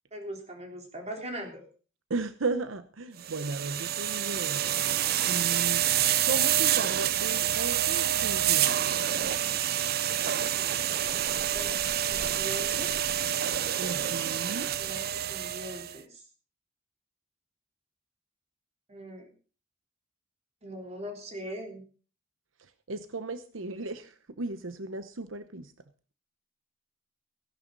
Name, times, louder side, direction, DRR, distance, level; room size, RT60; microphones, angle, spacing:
voice 1, 0.1-1.6 11.3-13.0 14.8-16.2 18.9-19.3 20.6-21.8, right 1 dB, 35° right, 2 dB, 3.7 m, -41 dB
voice 2, 2.1-9.2 13.8-14.7 22.9-25.7, right 3 dB, 85° right, 11 dB, 0.9 m, -36 dB
sound 1, 3.2-15.9, right 11 dB, 50° right, 0.5 m, -28 dB
16.5 x 11.5 x 4.0 m, 0.38 s
head